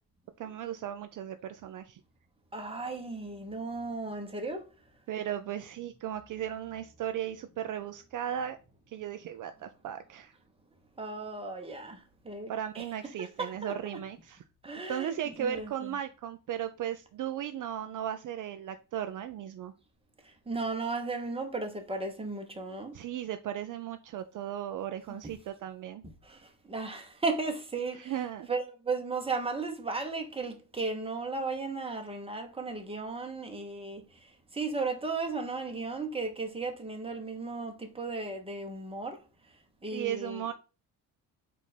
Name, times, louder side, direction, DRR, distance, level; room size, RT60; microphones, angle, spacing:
voice 1, 0.4-2.0 5.1-8.6 8.9-10.3 12.5-14.4 14.9-19.7 22.9-26.0 27.9-28.5 39.9-40.5, right 10 dB, 50° right, 0.5 m, -36 dB
voice 2, 2.5-4.7 11.0-12.0 12.2-12.8 13.2-14.0 14.6-16.0 20.5-22.9 25.1-25.4 26.0-28.2 28.5-34.0 34.5-39.2 39.8-40.5, right 3 dB, 15° right, 1.2 m, -35 dB
4.5 x 2.8 x 4.3 m
supercardioid pair, 80°, 41 cm